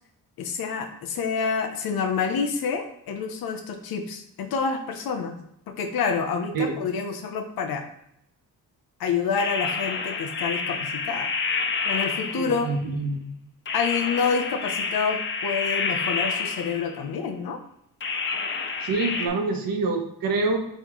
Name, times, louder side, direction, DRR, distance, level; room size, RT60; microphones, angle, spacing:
voice 1, 0.4-5.4 5.7-7.9 9.0-11.3 11.8-12.7 13.7-17.6, left 5 dB, 75° left, 6 dB, 0.7 m, -28 dB
sound 1, 9.4-12.8 13.7-17.1 18.0-19.3, left 5 dB, 35° left, 0.4 m, -29 dB
voice 2, 12.3-13.3 18.8-20.7, right 3 dB, 70° right, 4 dB, 1.0 m, -26 dB
4.2 x 4.0 x 3.0 m, 0.76 s
cardioid pair, 135°, 36 cm